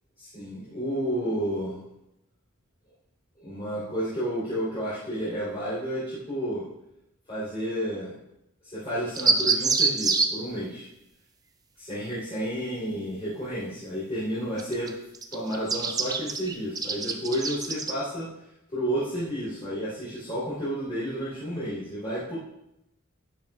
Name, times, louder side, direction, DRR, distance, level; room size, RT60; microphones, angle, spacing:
voice 1, 0.2-1.8 3.4-6.6 7.3-8.1 8.6-10.9 11.8-14.9 15.3-18.3 18.7-22.4, equal, 30° left, -11 dB, 3.4 m, -31 dB
sound 1, 9.2-10.3 14.6-14.9 15.1-17.9, right 4 dB, 15° right, 0.5 m, -25 dB
11.5 x 9.5 x 2.4 m, 0.84 s
head